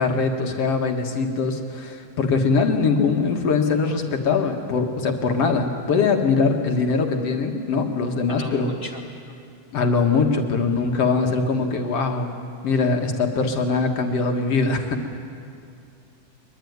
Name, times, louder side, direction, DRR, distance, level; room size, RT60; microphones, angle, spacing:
voice 1, 0.0-8.7 9.7-12.3 12.6-15.1, left 4 dB, 50° left, 3 dB, 2.3 m, -22 dB
voice 2, 8.3-9.4, left 2 dB, 15° left, 1 dB, 2.7 m, -38 dB
23.0 x 22.5 x 9.5 m, 2.5 s
omnidirectional pair, 4.1 m